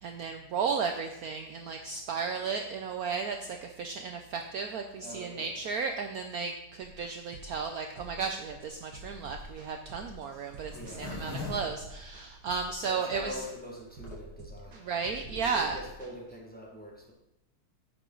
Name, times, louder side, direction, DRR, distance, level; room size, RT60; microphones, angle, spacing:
voice 1, 0.0-13.4 14.7-15.8, right 5 dB, 80° right, 5 dB, 0.8 m, -34 dB
voice 2, 5.0-5.6 10.7-11.1 12.8-17.1, equal, 5° left, -1 dB, 1.3 m, -44 dB
sound 1, 6.8-16.1, right 1 dB, 55° right, 2.0 m, -48 dB
Zipper (clothing), 8.4-12.7 13.2-13.3 13.5-13.6 13.8-14.2, left 3 dB, 90° left, 3.9 m, -42 dB
10.5 x 8.1 x 3.9 m, 0.93 s
omnidirectional pair, 2.4 m